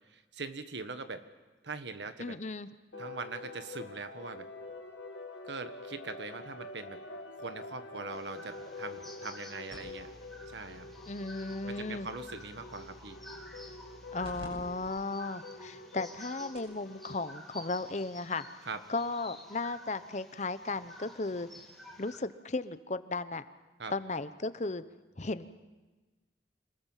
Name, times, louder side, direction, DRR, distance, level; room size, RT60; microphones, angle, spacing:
voice 1, 0.1-1.2 1.6-2.4 3.0-4.5 5.4-7.0 7.4-10.1 10.5-10.9 11.6-13.2 18.6-18.8 23.8-23.9, right 3 dB, 80° right, 9 dB, 1.5 m, -42 dB
voice 2, 2.2-2.7 11.1-12.1 14.1-18.4 18.9-21.5 22.0-23.4 23.9-24.8 25.2-25.5, left 3 dB, 40° left, 12 dB, 0.9 m, -35 dB
sound 1, 2.9-17.3, left 2 dB, 90° left, 2.5 m, -46 dB
bird chorus ambiance, 8.1-22.2, left 1 dB, ahead, 2.7 m, -52 dB
sound 2, 9.7-14.5 14.8-14.9 15.6-15.7 16.2-16.3 16.5-16.8 18.0-18.1, equal, 35° right, 7.2 m, -53 dB
26.5 x 20.0 x 7.4 m, 1.2 s
head